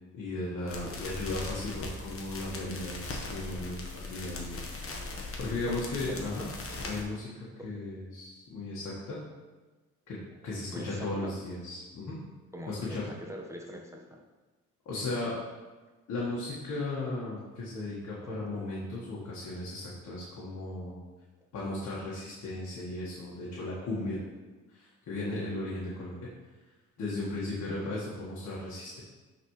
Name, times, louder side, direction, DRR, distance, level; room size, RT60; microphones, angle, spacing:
voice 1, 0.1-4.6 5.0-6.5 6.9-9.2 10.1-10.2 10.4-12.2 12.7-13.1 14.9-15.4 16.1-21.0 21.5-24.2 24.7-26.3 27.0-29.0, left 2 dB, 65° left, -7 dB, 1.7 m, -36 dB
sound 1, 0.7-7.0, left 2 dB, 45° left, 1.3 m, -39 dB
voice 2, 10.4-11.3 12.5-14.2 18.2-18.5 27.7-27.9, equal, 10° right, -1 dB, 1.3 m, -43 dB
11.0 x 4.2 x 3.2 m, 1.3 s
cardioid pair, 90°, 30 cm